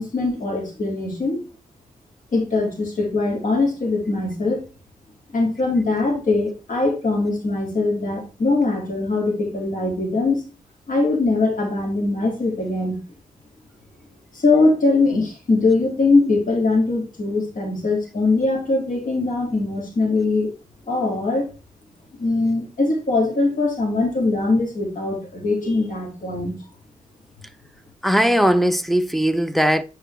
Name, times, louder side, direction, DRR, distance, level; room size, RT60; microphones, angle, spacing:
voice 1, 0.0-1.4 2.3-4.7 5.3-10.4 10.9-13.0 14.3-20.5 20.9-21.5 22.2-26.5, left 3 dB, 75° left, 2.2 m, -21 dB
voice 2, 28.0-29.8, equal, ahead, 0.5 m, -19 dB
8.8 x 4.5 x 3.2 m
wide cardioid pair, 80°, 14 cm